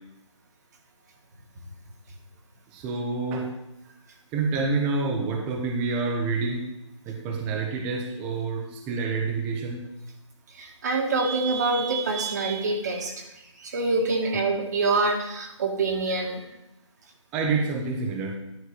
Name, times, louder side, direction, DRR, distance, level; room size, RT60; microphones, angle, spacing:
voice 1, 2.7-3.5 4.3-6.7 7.1-9.9 17.3-18.4, right 4 dB, 5° right, 1 dB, 0.6 m, -28 dB
voice 2, 10.5-13.2 13.6-16.5, right 3 dB, 35° right, 2 dB, 1.8 m, -26 dB
11.0 x 4.6 x 6.5 m, 0.89 s
figure-of-eight pair, 160°, 16 cm